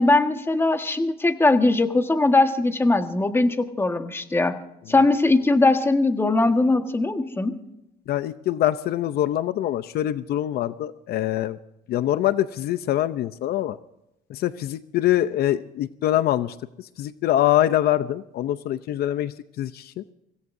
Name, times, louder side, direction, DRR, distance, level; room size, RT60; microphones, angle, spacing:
voice 1, 0.0-4.5 4.9-7.6, left 2 dB, 15° left, 7 dB, 1.5 m, -20 dB
voice 2, 8.1-11.6 11.9-13.8 14.3-20.0, left 13 dB, 70° left, 13 dB, 0.7 m, -24 dB
24.5 x 17.0 x 2.7 m, 0.85 s
cardioid pair, 110°, 17 cm